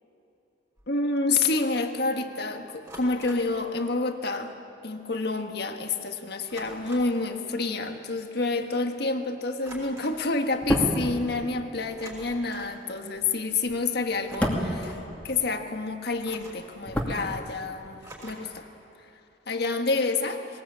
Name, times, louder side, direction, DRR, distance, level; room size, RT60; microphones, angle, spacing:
sound 1, 0.8-0.9 2.8-3.6 4.9-5.0 5.3-5.5 6.5-7.2 9.6-10.2 11.9-12.8 14.1-15.1 16.2-16.7 18.0-18.6, right 1 dB, 20° right, 5.7 m, -46 dB
voice 1, 0.9-4.5 4.8-18.7 19.5-20.5, left 3 dB, 65° left, 5 dB, 1.5 m, -28 dB
sound 2, 10.5-15.8 16.1-17.9 18.2-18.3, equal, 10° left, 2.4 m, -31 dB
21.0 x 19.5 x 8.5 m, 2.9 s
head